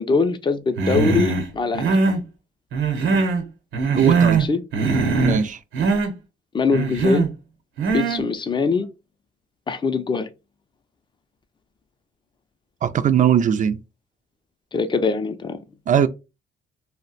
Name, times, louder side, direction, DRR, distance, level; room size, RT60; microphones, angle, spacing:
voice 1, 0.0-1.9 4.5-4.6 6.5-7.3 7.9-8.9 9.7-10.3 14.7-15.6, left 4 dB, 25° left, 0.4 m, -22 dB
Human voice, 0.8-1.4 1.7-2.2 2.7-3.4 3.7-4.5 4.7-5.4 5.7-6.1 6.7-7.3 7.8-8.2, right 4 dB, 80° right, 0.9 m, -20 dB
voice 2, 3.9-4.4 5.2-5.6 12.8-13.8 15.9-16.1, right 8 dB, 40° right, 0.4 m, -19 dB
2.4 x 2.1 x 3.9 m
cardioid pair, 90°, 20 cm